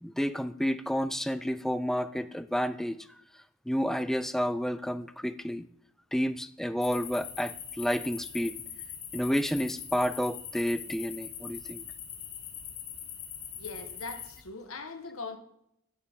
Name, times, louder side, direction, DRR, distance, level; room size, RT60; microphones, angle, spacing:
voice 1, 0.0-3.0 3.7-5.7 6.1-8.5 9.1-11.8, equal, ahead, 13 dB, 0.3 m, -30 dB
sound 1, 6.8-14.4, left 8 dB, 55° left, 1.5 m, -42 dB
voice 2, 13.6-15.4, left 4 dB, 85° left, 6 dB, 1.4 m, -40 dB
11.0 x 6.9 x 3.6 m, 0.74 s
head